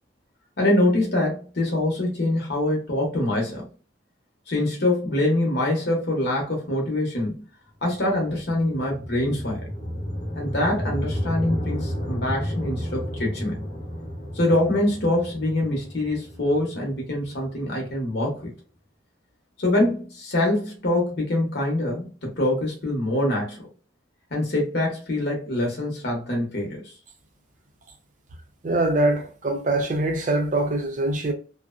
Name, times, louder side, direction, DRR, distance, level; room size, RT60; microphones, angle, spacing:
voice 1, 0.6-3.7 4.5-7.4 7.8-9.7 10.3-13.6 14.3-18.5 19.6-23.6 24.3-26.8, left 1 dB, 55° left, 0.8 m, -24 dB
sound 1, 7.8-18.1, equal, 25° left, 0.7 m, -32 dB
voice 2, 28.6-31.3, right 2 dB, 40° right, 0.5 m, -23 dB
2.6 x 2.0 x 2.3 m
head